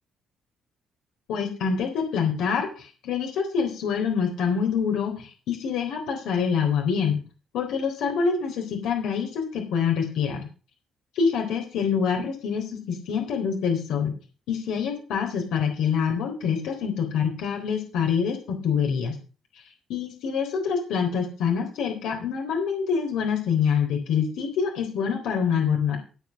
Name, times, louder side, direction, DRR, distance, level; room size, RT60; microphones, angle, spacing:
voice 1, 1.3-7.2 7.5-10.5 11.2-14.1 14.5-19.1 19.9-26.0, left 6 dB, 85° left, 2 dB, 3.8 m, -26 dB
16.5 x 6.1 x 6.4 m, 0.36 s
cardioid pair, 90°, 0 cm